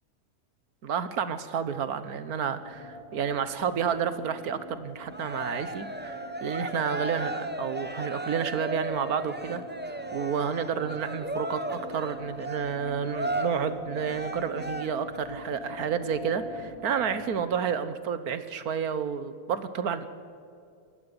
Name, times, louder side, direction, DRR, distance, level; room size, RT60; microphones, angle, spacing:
voice 1, 0.8-20.1, right 7 dB, 70° right, 12 dB, 1.6 m, -30 dB
sound 1, 2.6-17.5, left 1 dB, 70° left, 2.3 m, -43 dB
Cheering, 5.1-15.2, right 1 dB, 10° right, 0.8 m, -35 dB
19.5 x 13.5 x 10.0 m, 2.5 s
omnidirectional pair, 1.6 m